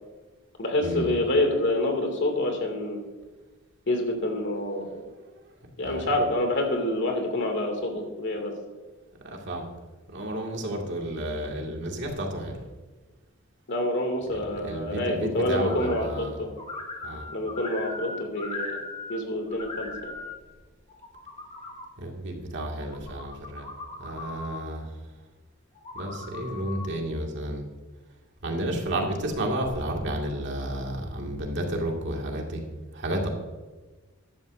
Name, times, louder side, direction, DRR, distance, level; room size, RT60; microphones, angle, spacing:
voice 1, 0.6-3.0 3.9-4.9 5.8-8.5 13.7-16.5 17.3-18.8 19.1-20.1, left 1 dB, 60° left, 3 dB, 2.4 m, -27 dB
voice 2, 9.2-9.7 10.1-12.6 14.6-16.4 17.0-17.3 22.0-23.7 24.0-25.0 25.9-27.6 28.4-32.6 32.9-33.3, right 1 dB, 60° right, 1 dB, 2.1 m, -31 dB
sound 1, 15.6-16.3 16.6-19.2 19.5-20.3 20.9-21.9 22.8-24.6 25.7-26.9, left 3 dB, 30° left, 1.7 m, -39 dB
14.5 x 11.5 x 2.6 m, 1.3 s
head